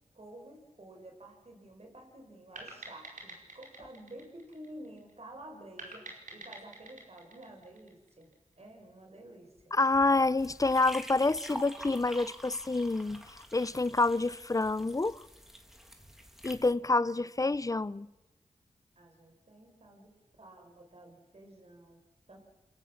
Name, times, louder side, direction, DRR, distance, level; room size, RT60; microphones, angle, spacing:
voice 1, 0.1-8.3 8.6-9.7 19.0-22.0 22.3-22.4, right 1 dB, 50° right, 5.4 m, -51 dB
sound 1, 2.6-5.1 5.8-8.3, right 2 dB, 80° right, 5.1 m, -48 dB
voice 2, 9.7-15.2 16.4-18.1, left 3 dB, 25° left, 0.7 m, -28 dB
sound 2, 10.4-16.7, equal, 5° right, 3.4 m, -47 dB
29.5 x 17.0 x 7.3 m
cardioid pair, 45°, 13 cm